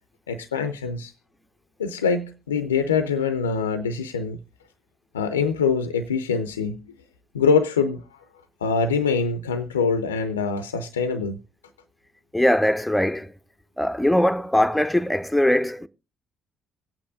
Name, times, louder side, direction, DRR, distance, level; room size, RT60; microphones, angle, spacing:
voice 1, 0.3-1.1 1.8-4.4 5.1-6.9 7.3-8.2 8.6-11.4, left 5 dB, 85° left, 0.5 m, -24 dB
voice 2, 12.3-13.3 13.8-15.9, left 1 dB, 5° left, 0.7 m, -21 dB
24.0 x 8.7 x 2.4 m
figure-of-eight pair, 45°, 0 cm